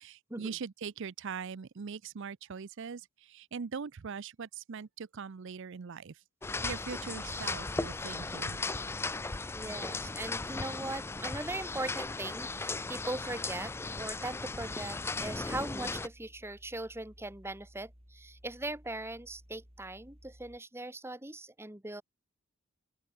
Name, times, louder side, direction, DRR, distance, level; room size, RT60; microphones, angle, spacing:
voice 1, 0.0-6.2 6.6-8.6, right 6 dB, 60° right, 0.5 m, -41 dB
sound 1, 6.4-16.1, left 3 dB, 10° left, 0.3 m, -37 dB
voice 2, 9.5-22.0, right 2 dB, 10° right, 1.4 m, -40 dB
sound 2, 15.5-20.6, equal, 30° right, 8.0 m, -58 dB
open air
head